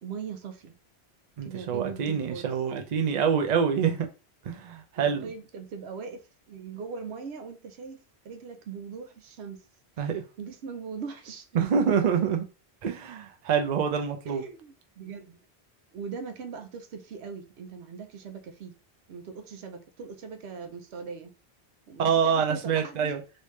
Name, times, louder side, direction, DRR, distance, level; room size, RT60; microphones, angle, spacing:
voice 1, 0.0-0.7 1.4-2.5 5.0-9.6 10.0-10.1 10.4-11.5 14.3-15.4 15.9-18.8 19.1-21.3 21.9-23.1, right 5 dB, 85° right, 0.9 m, -40 dB
voice 2, 1.4-4.1 4.4-5.3 10.0-10.2 11.5-12.4 12.8-14.4 22.0-23.2, right 7 dB, 50° right, 0.7 m, -26 dB
3.3 x 2.7 x 3.1 m
omnidirectional pair, 1.1 m